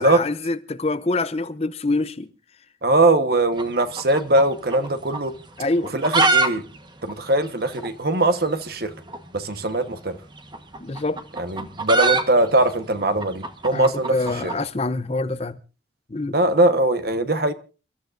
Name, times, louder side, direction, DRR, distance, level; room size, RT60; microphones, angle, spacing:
voice 1, 0.0-2.3 5.6-5.9 10.8-11.2 13.7-15.6 16.1-16.4, left 2 dB, 35° left, 0.7 m, -25 dB
voice 2, 2.8-5.3 5.9-6.6 7.0-8.9 9.3-10.2 11.4-14.5 16.3-17.5, right 2 dB, 55° right, 1.2 m, -21 dB
sound 1, 3.5-4.9 5.1-5.2 5.8-6.5 6.7-6.8 7.1-7.2 7.8-7.9 9.1-9.2 10.4-14.6, right 3 dB, 25° right, 1.2 m, -23 dB
29.0 x 13.0 x 2.6 m
head